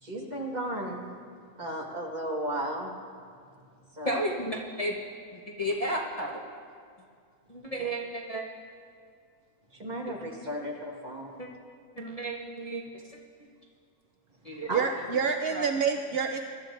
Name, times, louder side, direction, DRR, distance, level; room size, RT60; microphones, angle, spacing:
voice 1, 0.0-1.0 1.6-2.9 3.9-4.2 7.8-7.9 9.7-11.4 14.7-14.9, right 1 dB, 30° right, -1 dB, 1.6 m, -34 dB
voice 2, 4.0-5.0 5.3-6.4 7.5-8.4 11.4-11.5 12.0-12.8 14.4-14.7 15.5-15.7, right 1 dB, 30° left, -4 dB, 1.0 m, -32 dB
voice 3, 14.7-16.4, right 6 dB, 75° right, 5 dB, 0.5 m, -27 dB
22.0 x 12.0 x 2.6 m, 2.3 s
omnidirectional pair, 1.6 m